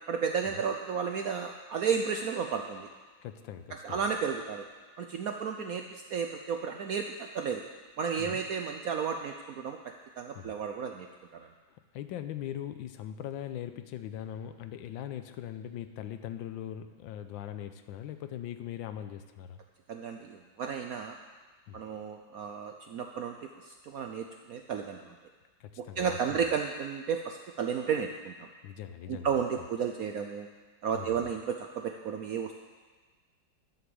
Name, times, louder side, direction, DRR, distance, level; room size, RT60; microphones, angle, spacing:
voice 1, 0.1-2.9 3.8-4.7 5.0-7.6 8.0-9.8 10.2-11.1 11.3-11.5 19.9-21.1 21.7-23.3 23.6-25.2 25.8-28.5 29.1-30.5 30.8-32.6, right 6 dB, 70° right, 4 dB, 0.8 m, -33 dB
voice 2, 3.2-4.1 8.2-8.4 10.3-10.5 11.9-19.6 21.7-21.8 25.6-26.4 28.6-29.3 29.6-29.7 30.9-31.3, left 10 dB, 80° left, 9 dB, 1.4 m, -40 dB
11.5 x 6.8 x 7.0 m, 1.4 s
omnidirectional pair, 2.1 m